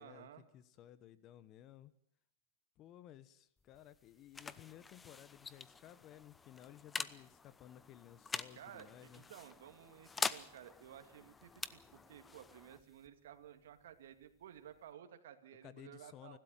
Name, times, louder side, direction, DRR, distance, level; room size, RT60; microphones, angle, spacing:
voice 1, 0.0-0.4 8.6-16.4, right 10 dB, 80° right, 7 dB, 2.3 m, -55 dB
voice 2, 0.5-1.9 2.8-9.2 15.6-16.4, left 12 dB, 35° left, 16 dB, 1.2 m, -57 dB
sound 1, 3.6-14.9, left 4 dB, 15° left, 0.9 m, -46 dB
29.5 x 12.5 x 9.0 m, 0.68 s
supercardioid pair, 135°, 0 cm